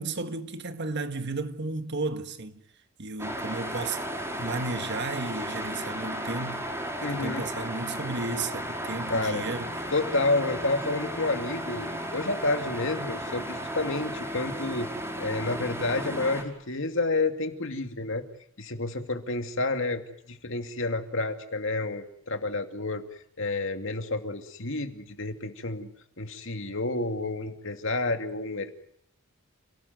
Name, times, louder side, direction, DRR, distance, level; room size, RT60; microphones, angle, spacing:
voice 1, 0.0-2.6 3.0-4.0 4.4-6.7 7.1-9.7, right 3 dB, 55° right, 1.6 m, -33 dB
sound 1, 3.2-16.4, equal, 15° right, 5.3 m, -34 dB
voice 2, 7.0-7.5 9.1-9.4 9.9-14.9 15.2-18.2 18.6-20.0 20.3-23.0 23.4-25.9 26.2-28.8, left 2 dB, 65° left, 2.5 m, -29 dB
29.5 x 18.5 x 9.3 m
head